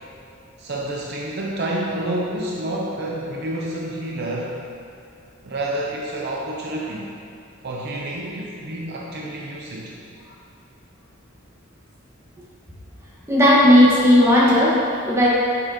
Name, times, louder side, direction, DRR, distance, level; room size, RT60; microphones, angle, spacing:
voice 1, 0.6-4.6 5.4-7.1 7.6-9.9, right 1 dB, 50° right, -3 dB, 0.7 m, -28 dB
voice 2, 13.3-15.3, left 1 dB, 15° right, -7 dB, 1.5 m, -15 dB
9.7 x 6.7 x 3.0 m, 2.5 s
head